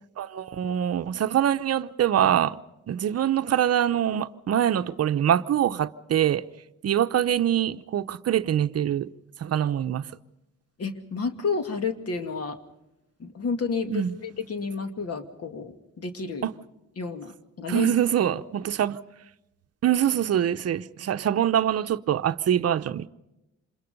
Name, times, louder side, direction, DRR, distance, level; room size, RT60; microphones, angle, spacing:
voice 1, 0.2-2.6 2.9-6.4 6.8-9.1 9.4-10.1 13.9-14.2 16.4-16.5 17.7-19.0 19.8-23.1, right 10 dB, 55° right, 0.8 m, -24 dB
voice 2, 10.8-12.6 13.2-16.5 17.0-17.3 17.6-17.9, left 4 dB, 55° left, 2.3 m, -30 dB
27.0 x 21.5 x 5.3 m
cardioid pair, 90°, 30 cm